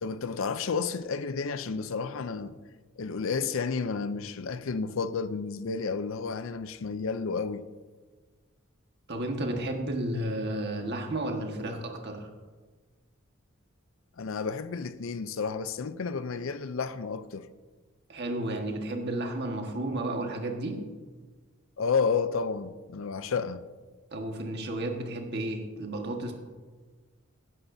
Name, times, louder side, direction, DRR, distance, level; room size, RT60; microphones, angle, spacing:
voice 1, 0.0-2.6 3.0-7.7 14.2-17.5 21.8-23.6, left 5 dB, 65° left, 0.5 m, -31 dB
voice 2, 9.1-12.3 18.1-20.8 24.1-26.3, right 1 dB, 50° right, 1.5 m, -32 dB
17.0 x 10.5 x 2.7 m
head